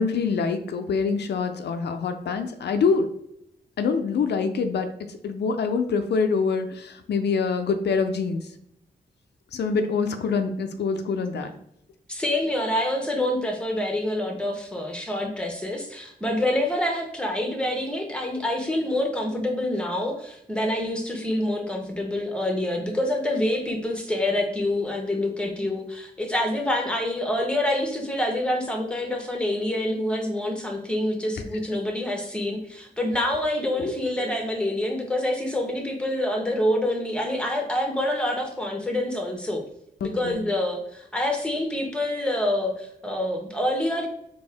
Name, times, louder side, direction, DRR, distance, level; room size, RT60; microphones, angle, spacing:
voice 1, 0.0-3.1 3.8-4.9 5.2-8.4 9.5-11.5 33.8-33.9 40.0-40.4, left 5 dB, 85° left, 7 dB, 0.5 m, -25 dB
voice 2, 12.1-39.6 40.0-44.1, left 1 dB, 5° left, 2 dB, 1.0 m, -26 dB
4.3 x 2.9 x 3.4 m, 0.74 s
wide cardioid pair, 90°, 17 cm